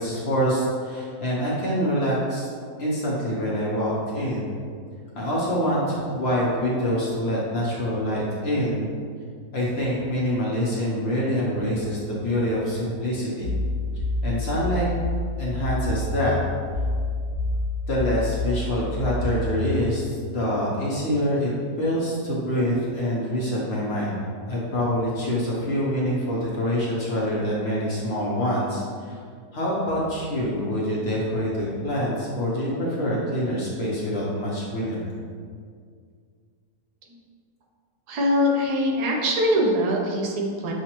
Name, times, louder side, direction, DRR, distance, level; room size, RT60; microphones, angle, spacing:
voice 1, 0.0-2.5 2.8-4.5 5.1-8.9 9.5-13.5 14.2-14.9 15.4-16.4 17.9-21.5 21.8-24.2 24.5-29.2 29.5-35.1, equal, 50° left, -5 dB, 0.9 m, -25 dB
sound 1, 13.4-19.8, left 2 dB, 55° right, 1.7 m, -28 dB
voice 2, 38.1-40.7, equal, 85° right, 0 dB, 1.3 m, -22 dB
6.8 x 2.5 x 2.9 m, 2.1 s
omnidirectional pair, 1.7 m